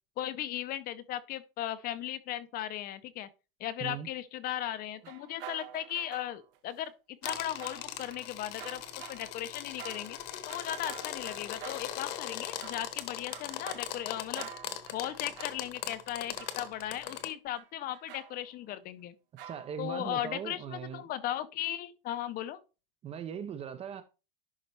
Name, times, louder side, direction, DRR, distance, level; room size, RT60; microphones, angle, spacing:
voice 1, 0.2-3.3 3.6-6.9 7.2-8.8 9.1-10.2 10.5-14.5 14.9-19.1 19.8-22.6, left 12 dB, 30° left, 0.6 m, -37 dB
sound 1, 4.5-6.6 7.2-8.2 8.6-17.2 17.6-18.5 19.4-19.8, right 11 dB, 70° right, 1.2 m, -49 dB
sound 2, 7.2-17.3, left 12 dB, 50° left, 1.1 m, -40 dB
voice 2, 19.5-21.0 23.0-24.0, right 8 dB, 20° right, 0.5 m, -39 dB
11.0 x 4.1 x 3.3 m
supercardioid pair, 140°, 29 cm